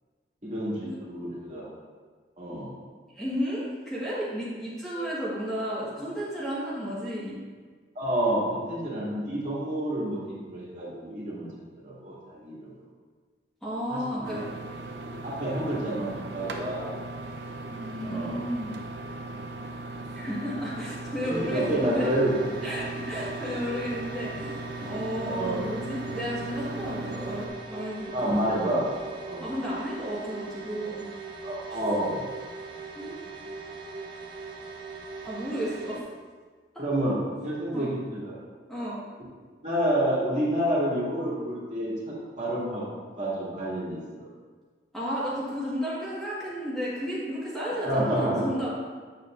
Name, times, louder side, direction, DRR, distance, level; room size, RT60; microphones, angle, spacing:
voice 1, 0.4-1.7 2.4-2.7 7.9-11.5 11.8-12.7 13.9-14.5 15.0-16.9 18.0-18.4 21.3-22.5 25.2-25.6 27.1-27.3 28.1-29.5 31.4-32.3 36.8-37.2 37.4-38.3 39.6-42.9 43.2-44.3 47.7-48.4, right 1 dB, 45° right, -7 dB, 2.3 m, -29 dB
voice 2, 3.1-7.4 13.6-14.4 17.7-18.8 20.1-22.1 22.6-28.3 29.4-31.0 31.7-31.8 32.9-34.0 35.2-36.0 37.7-37.9 38.7-39.0 44.9-48.7, equal, ahead, -10 dB, 1.6 m, -33 dB
sound 1, 14.2-27.5, right 2 dB, 85° right, 0.7 m, -38 dB
sound 2, 21.2-36.0, right 4 dB, 25° right, 0.9 m, -41 dB
8.6 x 7.2 x 2.6 m, 1.5 s
head